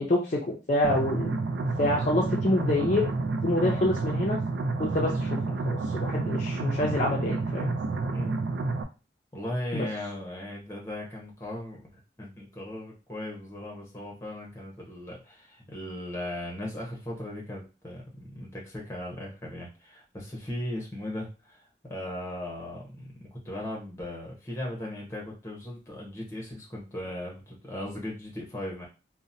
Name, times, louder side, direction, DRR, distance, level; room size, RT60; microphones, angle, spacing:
voice 1, 0.0-1.4 1.8-3.1 3.4-4.4 4.8-7.8 9.7-9.9, left 1 dB, 40° left, -2 dB, 0.5 m, -27 dB
sound 1, 0.8-8.8, right 3 dB, 85° right, 0.4 m, -29 dB
voice 2, 9.3-28.9, left 1 dB, 15° left, -2 dB, 0.8 m, -37 dB
2.8 x 2.1 x 2.6 m, 0.31 s
head